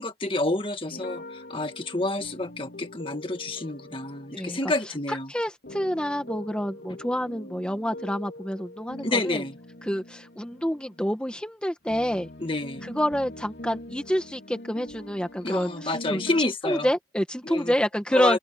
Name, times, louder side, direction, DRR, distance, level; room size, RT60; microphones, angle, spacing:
voice 1, 0.0-5.3 9.0-9.6 12.4-12.9 15.4-16.9 17.4-17.7 18.1-18.4, left 2 dB, 30° left, 1.9 m, -29 dB
sound 1, 0.9-5.2 5.6-11.2 11.9-16.4, left 1 dB, 75° left, 2.9 m, -43 dB
voice 2, 4.3-4.7 5.1-9.4 9.9-12.3 12.8-16.2 16.6-18.4, equal, 5° left, 1.7 m, -28 dB
open air
head